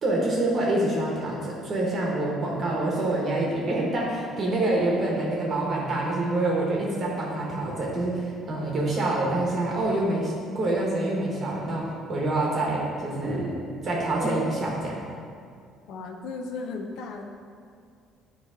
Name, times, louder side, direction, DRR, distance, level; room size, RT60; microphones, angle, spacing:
voice 1, 0.0-13.5 13.8-14.9, right 2 dB, 30° right, -3 dB, 1.1 m, -26 dB
voice 2, 15.9-17.2, left 4 dB, 70° left, 3 dB, 0.6 m, -35 dB
9.1 x 3.0 x 4.9 m, 2.2 s
cardioid pair, 150°, 0 cm